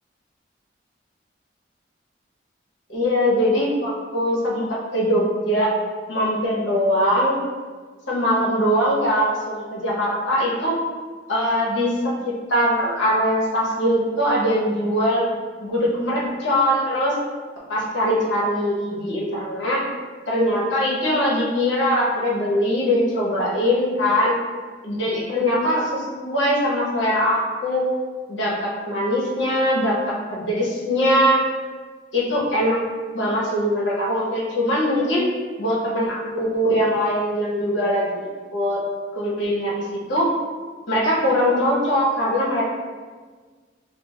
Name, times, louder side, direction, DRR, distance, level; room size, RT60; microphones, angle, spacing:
voice 1, 2.9-4.6 4.9-5.7 6.1-7.3 8.1-10.8 11.3-15.2 15.6-17.1 17.7-19.8 20.3-24.3 24.8-27.9 28.3-31.4 32.1-32.8 33.1-35.3 35.6-38.2 38.5-38.8 39.1-40.3 40.9-42.6, equal, 80° left, -5 dB, 1.1 m, -21 dB
6.0 x 2.2 x 2.4 m, 1.5 s
head